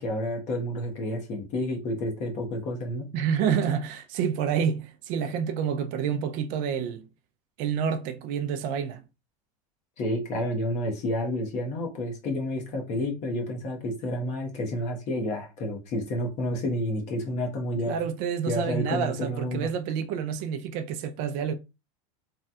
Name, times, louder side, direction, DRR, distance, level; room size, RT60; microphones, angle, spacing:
voice 1, 0.0-3.1 10.0-18.0 18.4-19.7, left 1 dB, 40° left, 1.1 m, -30 dB
voice 2, 3.1-7.0 7.6-9.0 17.9-21.5, right 7 dB, 50° right, 0.4 m, -28 dB
3.1 x 2.3 x 2.7 m
supercardioid pair, 140°, 18 cm